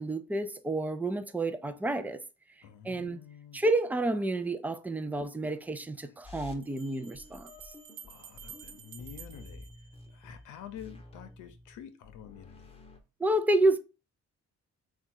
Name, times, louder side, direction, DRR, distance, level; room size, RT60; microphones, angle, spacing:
voice 1, 0.0-2.2 2.8-3.2 3.5-7.5 13.2-13.8, right 2 dB, 5° right, 0.4 m, -29 dB
voice 2, 2.6-3.6 6.0-6.1 8.1-9.7 10.1-12.7, left 9 dB, 80° left, 0.7 m, -48 dB
sound 1, 6.2-13.0, left 2 dB, 20° left, 0.8 m, -51 dB
Bell, 6.6-10.5, right 8 dB, 70° right, 0.7 m, -51 dB
3.6 x 2.4 x 4.3 m
cardioid pair, 90°, 30 cm